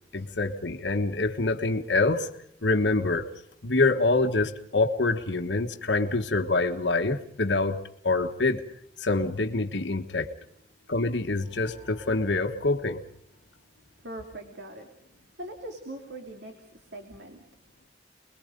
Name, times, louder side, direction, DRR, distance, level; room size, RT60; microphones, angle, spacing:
voice 1, 0.1-2.3 2.6-3.3 3.6-8.6 9.0-10.3 10.9-13.0, left 3 dB, 80° left, 5 dB, 1.4 m, -26 dB
sound 1, 11.4-14.2, left 1 dB, 30° right, 3.9 m, -53 dB
voice 2, 14.0-17.4, right 1 dB, 75° right, 3 dB, 2.8 m, -42 dB
29.5 x 21.5 x 5.2 m, 0.67 s
head